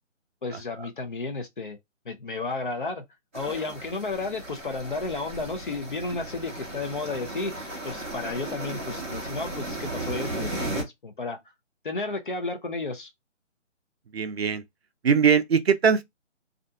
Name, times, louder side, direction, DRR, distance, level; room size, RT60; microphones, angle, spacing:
voice 1, 0.4-1.8 2.1-3.0 3.3-11.4 11.8-13.1, left 3 dB, 40° left, 0.6 m, -32 dB
sound 1, 3.3-10.8, right 1 dB, 10° right, 0.6 m, -35 dB
voice 2, 14.1-14.6 15.0-16.0, right 6 dB, 55° right, 0.5 m, -21 dB
2.4 x 2.2 x 2.6 m
figure-of-eight pair, 155°, 38 cm